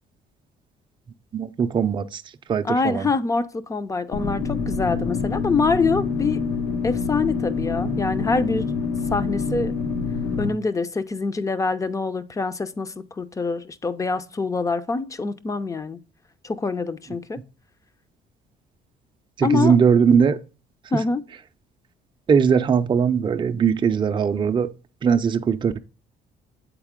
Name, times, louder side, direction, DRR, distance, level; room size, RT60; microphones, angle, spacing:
voice 1, 1.3-2.2 2.5-3.1 19.4-20.4 22.3-24.7 25.0-25.8, right 6 dB, 30° right, 0.5 m, -20 dB
voice 2, 2.6-6.4 6.8-8.7 9.1-9.7 10.4-16.0 16.4-17.4 19.4-19.8 20.9-21.2, left 4 dB, 20° left, 0.5 m, -25 dB
sound 1, 4.1-10.5, left 5 dB, 90° left, 1.3 m, -26 dB
8.1 x 4.1 x 3.6 m
cardioid pair, 110°, 17 cm